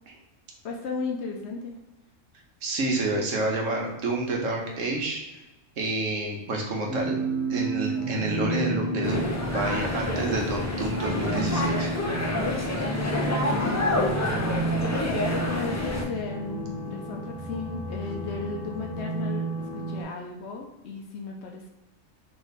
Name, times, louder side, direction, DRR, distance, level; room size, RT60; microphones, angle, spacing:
voice 1, 0.6-1.8 6.5-6.6 13.4-21.7, left 4 dB, 60° left, 1 dB, 0.9 m, -35 dB
voice 2, 2.6-5.2 5.8-7.1 7.5-11.9, right 2 dB, 70° right, 0 dB, 1.3 m, -29 dB
sound 1, 6.9-20.0, right 2 dB, 40° right, 1.7 m, -31 dB
sound 2, 9.0-16.0, left 1 dB, 25° left, 0.3 m, -28 dB
3.4 x 3.3 x 4.0 m, 1.0 s
omnidirectional pair, 1.4 m